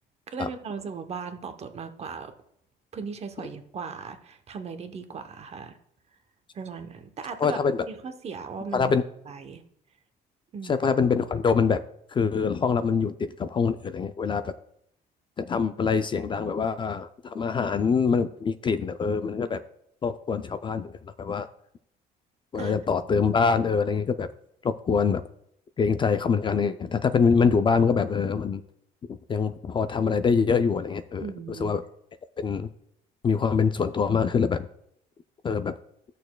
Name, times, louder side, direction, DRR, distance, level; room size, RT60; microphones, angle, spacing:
voice 1, 0.3-2.3 2.9-5.8 6.5-7.6 7.9-8.9 9.3-9.6 10.5-10.8 22.5-22.7 31.2-31.8, right 5 dB, 40° right, 8 dB, 0.8 m, -37 dB
voice 2, 7.4-7.9 8.7-9.0 10.6-11.8 12.1-14.5 15.4-19.6 20.0-21.5 22.5-24.3 24.6-25.2 25.8-28.6 29.1-31.8 32.4-32.7 33.2-34.7 35.4-35.7, left 5 dB, 30° left, 11 dB, 0.4 m, -24 dB
14.0 x 6.6 x 2.2 m, 0.74 s
cardioid pair, 110°, 17 cm